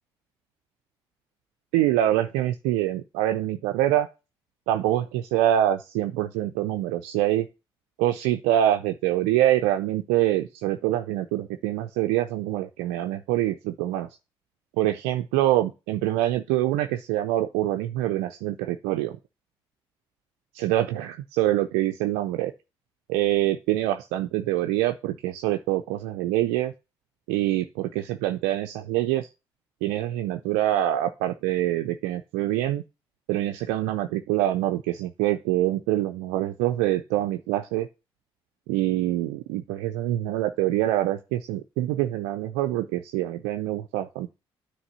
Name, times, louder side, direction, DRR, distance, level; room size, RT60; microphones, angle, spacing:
voice 1, 1.7-4.1 4.7-7.5 8.0-14.1 14.8-19.2 20.5-22.5 23.1-26.7 27.3-29.3 29.8-32.8 33.3-37.9 38.7-44.3, right 13 dB, 75° right, 7 dB, 0.4 m, -25 dB
9.6 x 3.3 x 5.5 m, 0.28 s
hypercardioid pair, 45°, 13 cm